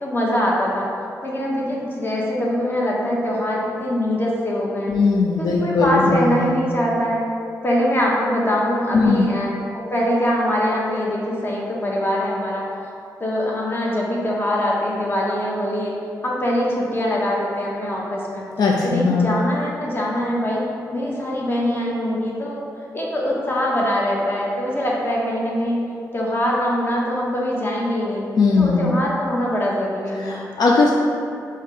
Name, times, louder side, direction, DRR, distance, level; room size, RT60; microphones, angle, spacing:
voice 1, 0.0-0.9 1.2-5.0 5.4-7.3 7.6-12.7 13.2-15.9 16.2-18.4 18.8-20.6 20.9-22.6 22.9-25.8 26.1-28.2 28.6-30.3, equal, 30° left, -4 dB, 1.0 m, -23 dB
voice 2, 4.9-6.5 8.9-9.3 18.6-19.3 28.4-28.9 30.2-30.9, left 4 dB, 70° left, -2 dB, 0.4 m, -18 dB
4.7 x 2.8 x 3.8 m, 2.5 s
cardioid pair, 70°, 7 cm